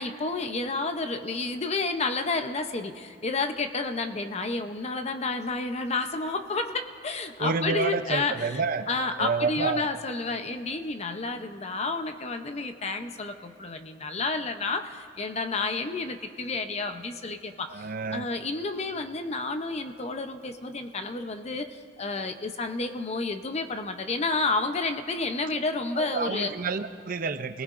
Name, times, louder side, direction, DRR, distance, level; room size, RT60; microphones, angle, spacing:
voice 1, 0.0-8.6 8.9-26.5, left 3 dB, 35° left, 7 dB, 0.7 m, -30 dB
voice 2, 7.4-8.9 9.2-9.9 17.7-18.3 26.0-27.6, right 4 dB, 50° right, 10 dB, 0.6 m, -29 dB
29.5 x 18.5 x 2.5 m, 2.5 s
head